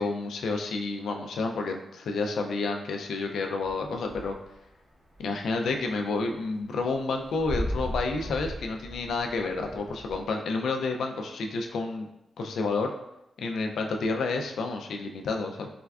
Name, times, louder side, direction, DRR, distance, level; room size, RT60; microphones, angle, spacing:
voice 1, 0.0-4.3 5.2-12.1 12.4-12.9 13.4-15.7, left 3 dB, 90° left, 3 dB, 0.3 m, -30 dB
sound 1, 3.6-4.7 4.9-10.2, equal, 50° right, 1.3 m, -36 dB
4.1 x 2.2 x 2.3 m, 0.88 s
wide cardioid pair, 115°, 0 cm